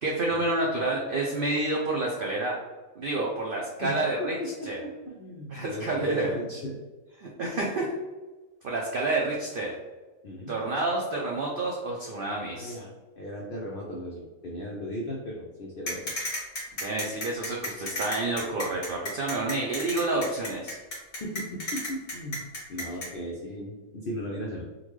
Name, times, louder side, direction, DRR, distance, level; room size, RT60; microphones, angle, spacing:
voice 1, 0.0-2.6 3.0-4.4 4.7-4.8 5.5-6.4 7.2-7.9 8.6-9.7 10.5-12.8 16.8-20.8, right 2 dB, 80° right, -2 dB, 0.4 m, -29 dB
voice 2, 3.8-6.8 10.2-10.5 12.4-12.9 13.2-16.2 21.2-22.4 22.7-24.7, equal, 75° left, -2 dB, 0.5 m, -37 dB
sound 1, 15.9-23.1, left 1 dB, 40° left, 1.4 m, -33 dB
3.7 x 2.2 x 3.1 m, 1.2 s
omnidirectional pair, 1.6 m